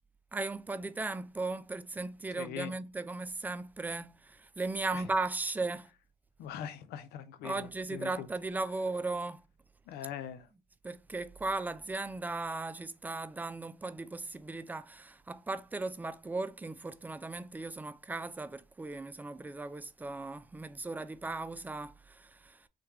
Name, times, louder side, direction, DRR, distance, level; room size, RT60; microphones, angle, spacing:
voice 1, 0.3-5.9 7.4-9.4 10.8-22.6, right 3 dB, 10° right, 0.3 m, -37 dB
voice 2, 2.3-2.7 4.9-5.1 6.4-8.3 9.9-10.5, left 10 dB, 70° left, 0.5 m, -42 dB
3.2 x 2.3 x 3.3 m
hypercardioid pair, 50°, 17 cm